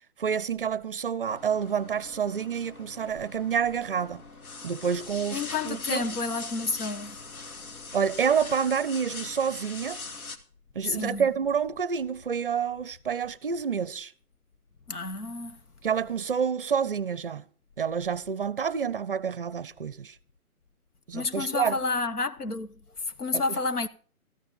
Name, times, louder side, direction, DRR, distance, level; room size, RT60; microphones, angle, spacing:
voice 1, 0.2-4.2 4.6-6.0 7.9-10.0 10.7-14.1 15.8-17.4 17.8-20.2 21.1-21.8 23.3-23.4, right 7 dB, 40° right, 0.5 m, -28 dB
sound 1, 1.3-10.4, left 3 dB, 70° left, 2.0 m, -42 dB
voice 2, 5.3-7.2 10.8-11.3 14.9-15.6 21.1-22.7 23.1-23.9, left 3 dB, 85° left, 1.4 m, -30 dB
14.0 x 10.0 x 5.4 m
figure-of-eight pair, 145°, 45 cm